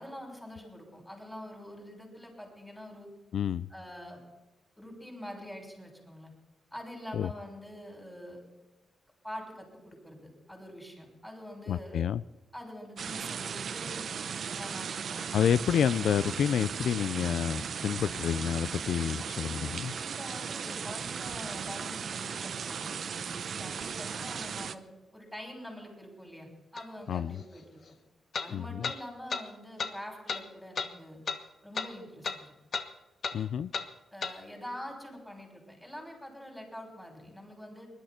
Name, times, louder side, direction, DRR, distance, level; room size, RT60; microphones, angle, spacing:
voice 1, 0.0-3.1 3.7-4.2 4.8-6.3 6.7-8.4 9.2-12.0 12.5-14.1 14.5-15.3 19.9-24.8 25.1-27.8 28.4-31.2 31.6-32.5 34.1-37.9, equal, 5° left, 1 dB, 6.3 m, -45 dB
voice 2, 3.3-3.7 7.1-7.3 11.7-12.2 15.3-19.9 27.1-27.4 28.5-28.9 33.3-33.7, left 8 dB, 80° left, 16 dB, 0.4 m, -29 dB
sound 1, 13.0-24.8, right 6 dB, 60° right, 0.8 m, -37 dB
sound 2, 26.8-26.9 28.3-28.5 28.8-29.0 29.3-29.4 29.8-29.9 30.3-30.4 30.8-30.9 31.3-31.4 31.7-31.9 32.2-32.4 32.7-32.9 33.2-33.4 33.7-33.9 34.2-34.3, left 5 dB, 55° left, 1.2 m, -33 dB
21.5 x 12.0 x 4.4 m, 1.1 s
cardioid pair, 100°, 0 cm